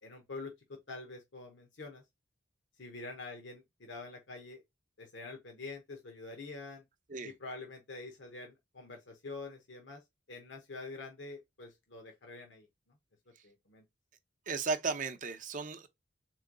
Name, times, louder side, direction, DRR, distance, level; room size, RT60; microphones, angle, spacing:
voice 1, 0.0-2.0 2.8-4.6 5.0-6.8 7.2-10.0 10.3-12.7 13.4-13.8, left 3 dB, 65° left, 1.0 m, -46 dB
voice 2, 14.5-15.9, right 4 dB, 45° right, 0.6 m, -35 dB
3.7 x 3.1 x 3.8 m
head